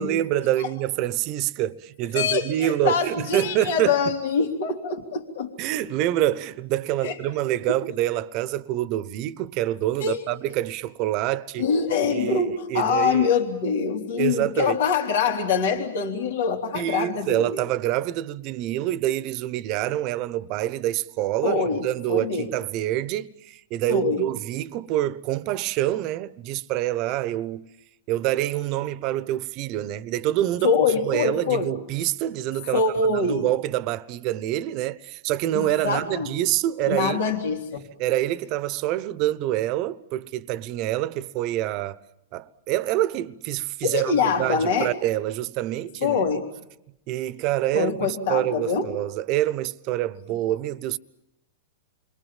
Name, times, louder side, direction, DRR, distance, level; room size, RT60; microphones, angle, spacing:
voice 1, 0.0-4.0 5.6-11.7 12.1-13.3 14.2-14.8 16.7-27.7 28.1-30.7 31.0-32.8 33.2-37.3 38.0-42.0 42.3-46.3 47.1-51.0, right 14 dB, 45° right, 1.0 m, -26 dB
voice 2, 2.1-5.5 7.0-7.2 7.7-7.8 10.0-10.2 11.6-17.6 21.4-22.5 23.9-24.3 30.6-31.7 32.7-33.5 35.5-36.3 36.9-37.9 43.8-44.9 46.0-46.5 47.7-48.9, left 5 dB, 70° left, 3.1 m, -24 dB
29.0 x 22.5 x 7.4 m
hypercardioid pair, 130°, 0 cm